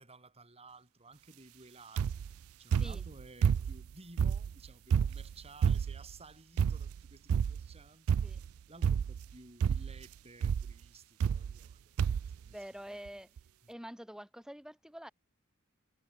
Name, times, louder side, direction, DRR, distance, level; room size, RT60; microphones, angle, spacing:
voice 1, 0.0-2.3 2.6-8.3 8.7-12.0 12.3-12.6 13.6-13.7, right 3 dB, 30° right, 4.0 m, -55 dB
sound 1, 2.0-2.3 2.7-3.9 4.2-6.1 6.6-7.0 7.3-7.7 8.1-8.5 8.8-9.3 9.6-10.0 10.4-10.7 11.2-11.7 12.0-12.4 13.1-13.2 13.4-13.5, right 7 dB, 85° right, 0.3 m, -30 dB
voice 2, 12.5-13.3 13.7-15.1, equal, 5° right, 1.6 m, -46 dB
head